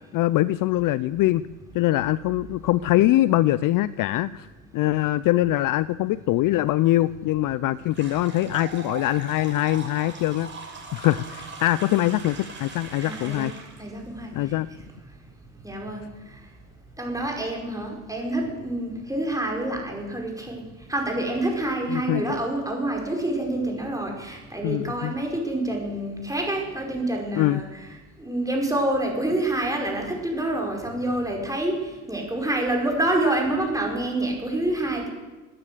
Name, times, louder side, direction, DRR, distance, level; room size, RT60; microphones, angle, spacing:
voice 1, 0.1-1.4 1.7-4.5 4.7-10.5 10.9-13.5 14.3-14.7 21.9-22.4 24.6-25.1 27.3-27.6, left 15 dB, 50° left, 19 dB, 0.5 m, -23 dB
sound 1, 7.9-13.8, right 4 dB, 25° right, 6.0 m, -40 dB
voice 2, 13.0-13.5 13.8-14.6 15.6-16.1 16.3-16.4 17.0-27.9 28.2-35.1, right 1 dB, 10° right, 1 dB, 5.2 m, -27 dB
17.5 x 10.0 x 7.9 m, 1.2 s
hypercardioid pair, 70°, 44 cm